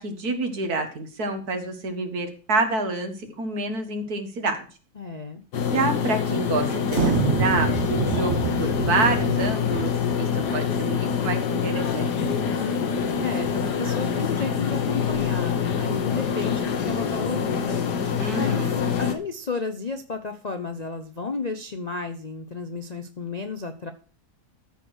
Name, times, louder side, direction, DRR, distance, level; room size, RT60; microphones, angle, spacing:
voice 1, 0.0-4.7 5.7-12.1 18.2-18.8, right 3 dB, 65° right, 6 dB, 2.1 m, -28 dB
voice 2, 5.0-5.4 12.4-18.7 19.0-23.9, left 4 dB, 40° left, 7 dB, 0.6 m, -33 dB
sound 1, 5.5-19.1, left 7 dB, 80° left, 1.8 m, -25 dB
sound 2, 6.9-10.6, right 4 dB, 50° right, 1.2 m, -26 dB
13.5 x 4.7 x 6.3 m, 0.38 s
omnidirectional pair, 1.8 m